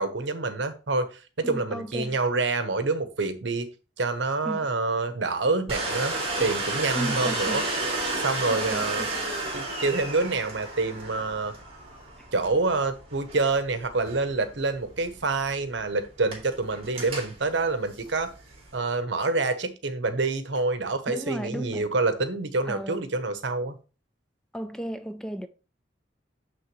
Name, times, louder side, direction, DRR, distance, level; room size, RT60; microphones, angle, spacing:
voice 1, 0.0-3.7 4.0-7.6 8.2-9.1 9.5-11.5 12.3-18.3 18.7-23.7, right 3 dB, 70° right, 1.0 m, -27 dB
voice 2, 1.4-2.2 4.4-4.7 6.9-7.7 8.5-9.4 21.1-21.9 22.7-23.0 24.5-25.5, right 1 dB, 5° left, 0.4 m, -35 dB
Domestic sounds home sounds, 5.7-18.8, right 2 dB, 30° right, 2.6 m, -33 dB
6.8 x 6.4 x 3.1 m
head